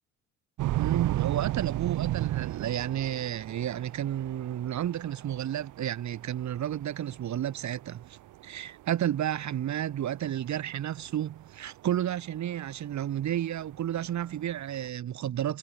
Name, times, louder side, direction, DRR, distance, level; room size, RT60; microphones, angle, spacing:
sound 1, 0.6-14.8, right 15 dB, 85° right, 3.0 m, -34 dB
voice 1, 0.8-8.2 8.4-15.6, right 11 dB, 70° right, 3.6 m, -32 dB
cardioid pair, 90°, 30 cm